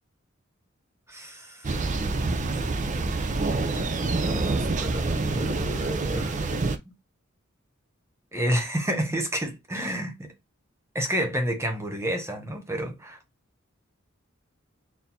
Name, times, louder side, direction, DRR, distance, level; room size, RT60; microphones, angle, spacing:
voice 1, 1.1-1.8 3.7-6.4 8.3-10.3 10.9-13.2, right 1 dB, 15° right, 0.8 m, -30 dB
Thunder, 1.6-6.8, right 3 dB, 40° right, 0.5 m, -27 dB
4.3 x 2.1 x 4.1 m
head